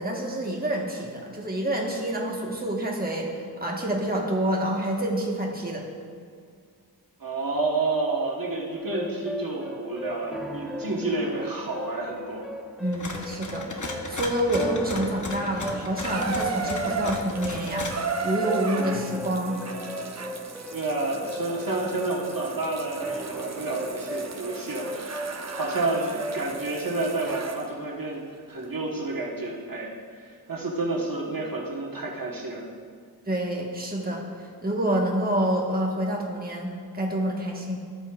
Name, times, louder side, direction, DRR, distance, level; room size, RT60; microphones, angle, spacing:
voice 1, 0.0-3.3 3.6-5.8 12.8-19.6 33.3-34.3 34.6-37.8, right 1 dB, 25° right, -1 dB, 1.2 m, -28 dB
voice 2, 7.2-12.4 20.7-25.2 25.5-28.2 28.5-29.9 30.2-32.6, right 2 dB, 60° right, -2 dB, 1.2 m, -30 dB
sound 1, 8.7-27.4, equal, ahead, 0.6 m, -37 dB
sound 2, 12.9-18.0, left 2 dB, 50° left, 0.9 m, -36 dB
Water tap faucet / Bathtub (filling or washing), 16.0-27.7 28.6-28.7, right 4 dB, 45° right, 0.6 m, -35 dB
12.0 x 8.1 x 2.4 m, 2.1 s
wide cardioid pair, 40°, 38 cm